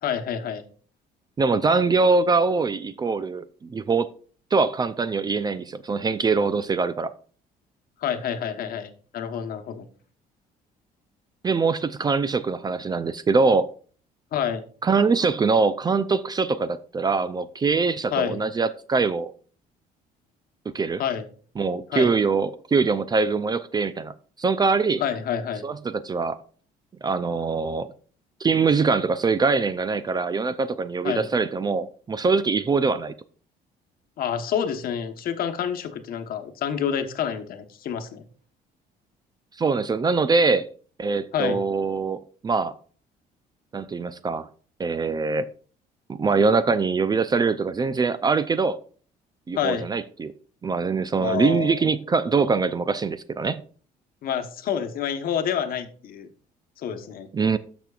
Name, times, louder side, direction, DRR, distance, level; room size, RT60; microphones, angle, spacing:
voice 1, 0.0-0.6 8.0-9.9 14.3-14.6 18.1-18.4 21.0-21.2 21.9-22.1 25.0-25.6 31.0-31.3 34.2-38.2 41.3-41.6 49.5-49.9 51.2-51.9 54.2-56.3 56.8-57.3, left 8 dB, 60° left, 1.1 m, -28 dB
voice 2, 1.4-4.1 4.5-7.1 11.4-13.7 14.8-19.3 20.7-21.0 21.6-24.1 24.4-25.0 25.6-26.4 27.0-27.9 28.4-33.1 39.6-40.7 41.0-42.7 43.7-44.5 44.8-45.5 46.1-48.8 49.5-50.3 50.6-53.6 57.3-57.6, right 4 dB, 25° right, 0.4 m, -23 dB
12.5 x 6.1 x 2.4 m
cardioid pair, 110°, 17 cm